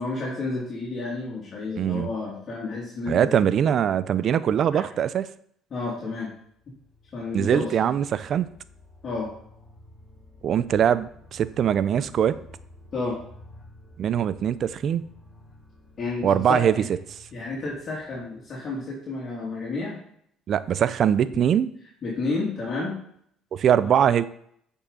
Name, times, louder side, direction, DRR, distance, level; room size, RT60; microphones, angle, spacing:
voice 1, 0.0-3.5 4.7-4.9 5.7-6.3 7.1-7.7 9.0-9.3 12.9-13.2 16.0-16.8 17.3-20.0 21.2-21.4 22.0-22.9 23.8-23.9, left 3 dB, 45° left, -5 dB, 2.6 m, -31 dB
voice 2, 1.8-2.1 3.1-5.3 7.3-8.5 10.4-12.4 14.0-15.0 16.2-16.7 20.5-21.7 23.5-24.2, right 9 dB, 55° right, 16 dB, 0.5 m, -22 dB
sound 1, 6.4-19.1, left 1 dB, 5° left, 3.3 m, -51 dB
8.7 x 5.5 x 4.1 m, 0.67 s
supercardioid pair, 90°, 0 cm